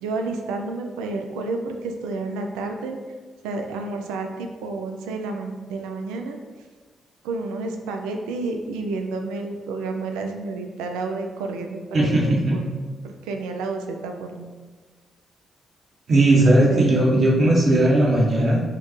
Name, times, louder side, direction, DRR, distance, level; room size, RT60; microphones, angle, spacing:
voice 1, 0.0-3.0 3.4-6.4 7.2-12.6 13.0-14.5 16.6-17.5, right 3 dB, 90° right, 4 dB, 0.3 m, -30 dB
voice 2, 11.9-12.5 16.1-18.6, right 1 dB, 60° right, -3 dB, 1.1 m, -17 dB
4.4 x 2.2 x 3.1 m, 1.4 s
supercardioid pair, 55°, 0 cm